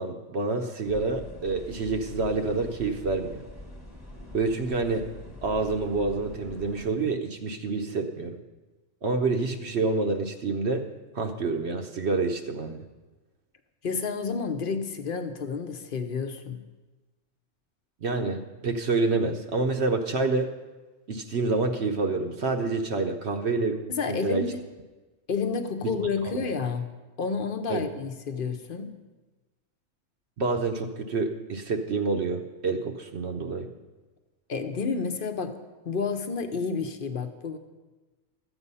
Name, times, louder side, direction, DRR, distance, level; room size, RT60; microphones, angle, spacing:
voice 1, 0.0-3.4 4.3-5.1 5.4-8.4 9.0-10.9 11.1-12.8 18.0-20.5 21.1-24.4 25.8-25.9 26.2-26.4 27.7-27.8 30.4-33.7, right 3 dB, 60° right, 5 dB, 1.0 m, -28 dB
sound 1, 0.8-6.9, left 1 dB, 10° left, 1.2 m, -44 dB
voice 2, 13.8-16.6 23.9-24.6 25.3-26.9 27.2-29.0 34.5-35.6 35.8-37.6, left 5 dB, 45° left, 8 dB, 0.9 m, -30 dB
13.0 x 8.1 x 5.5 m, 1.2 s
omnidirectional pair, 1.4 m